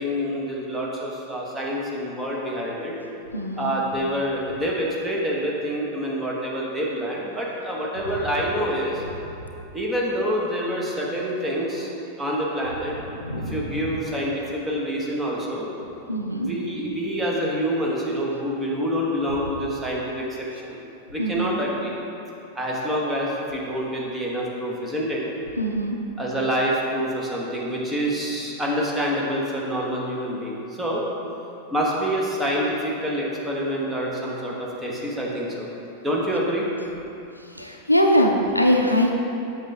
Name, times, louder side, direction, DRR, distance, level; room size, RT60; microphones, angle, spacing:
voice 1, 0.0-3.0 3.6-9.0 9.7-11.9 12.2-12.9 13.3-15.7 16.3-20.8 21.1-21.9 22.5-25.2 26.2-31.0 31.7-35.7 36.0-36.7, equal, 10° right, -4 dB, 1.4 m, -27 dB
voice 2, 3.3-3.7 13.1-14.0 16.1-16.5 21.2-21.6 25.6-26.0 37.5-39.1, equal, 90° left, 2 dB, 0.6 m, -22 dB
8.0 x 6.7 x 3.4 m, 2.8 s
figure-of-eight pair, 90°, 0 cm